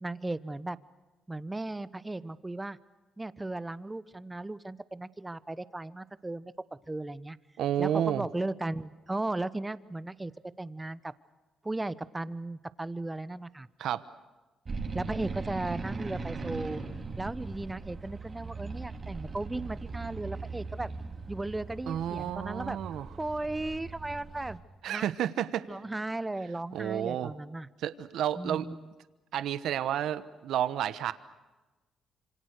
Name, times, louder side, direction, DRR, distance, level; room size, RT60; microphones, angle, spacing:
voice 1, 0.0-0.8 1.3-2.8 3.2-6.5 6.9-7.4 7.8-10.3 10.6-11.1 11.6-13.7 14.9-16.8 17.2-20.9 21.3-22.8 23.2-24.6 24.9-25.1 25.7-27.7 28.4-28.9, right 2 dB, 15° right, 16 dB, 1.0 m, -36 dB
voice 2, 7.6-8.3 13.8-14.0 21.9-23.1 24.8-25.7 26.7-27.3 27.8-28.7 29.3-31.1, right 10 dB, 80° right, 14 dB, 1.1 m, -31 dB
sound 1, 14.7-24.6, right 4 dB, 35° right, 3.1 m, -39 dB
27.0 x 26.0 x 6.6 m, 1.1 s
cardioid pair, 90°, 0 cm